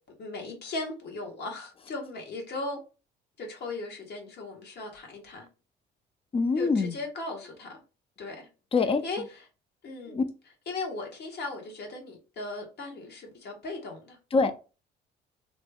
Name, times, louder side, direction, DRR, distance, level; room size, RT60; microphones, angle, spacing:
voice 1, 0.2-2.8 3.4-5.5 6.6-7.8 8.2-8.5 9.0-9.4 9.8-10.2 10.7-14.2, left 2 dB, 55° left, 1.4 m, -37 dB
voice 2, 6.3-7.0 8.7-9.0 10.1-10.2 14.3-14.6, left 4 dB, 30° left, 0.5 m, -24 dB
2.9 x 2.2 x 3.4 m
supercardioid pair, 80°, 20 cm